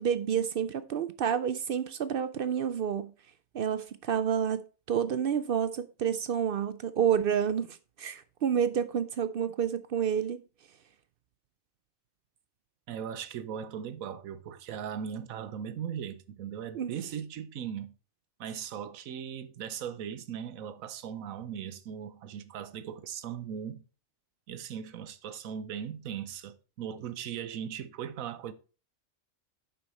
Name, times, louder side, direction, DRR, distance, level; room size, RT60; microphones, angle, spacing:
voice 1, 0.0-3.1 3.5-4.6 4.9-10.4 16.7-16.9, right 8 dB, 65° right, 0.5 m, -29 dB
voice 2, 12.9-17.9 18.4-23.8 24.5-28.5, right 8 dB, 85° right, 1.1 m, -38 dB
7.8 x 5.7 x 4.1 m
omnidirectional pair, 1.4 m